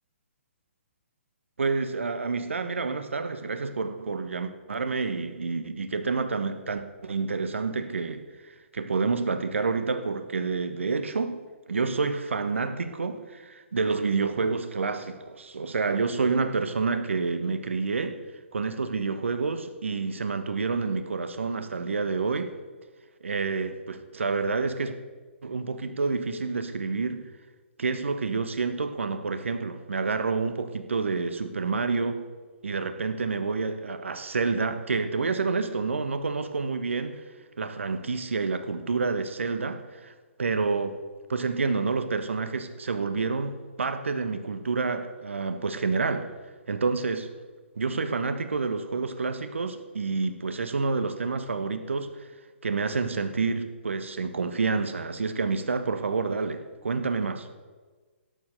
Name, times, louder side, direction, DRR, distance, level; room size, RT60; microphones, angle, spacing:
voice 1, 1.6-11.4 11.7-18.2 18.5-22.6 23.2-25.0 25.4-27.2 27.8-32.2 32.6-37.2 37.6-40.1 40.4-41.0 41.3-46.3 46.7-47.3 47.8-52.3 52.6-57.5, right 4 dB, 70° right, 1.2 m, -28 dB
12.0 x 10.0 x 6.5 m
figure-of-eight pair, 130°, 7 cm